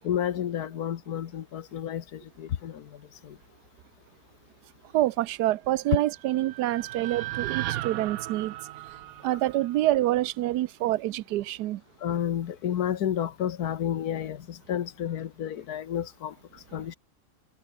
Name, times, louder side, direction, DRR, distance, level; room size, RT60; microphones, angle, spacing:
voice 1, 0.0-3.4 12.0-17.0, left 10 dB, 70° left, 1.5 m, -31 dB
voice 2, 4.9-8.5 9.2-11.8, right 15 dB, 90° right, 1.2 m, -26 dB
sound 1, 5.9-10.1, right 15 dB, 70° right, 0.9 m, -36 dB
omnidirectional pair, 1.7 m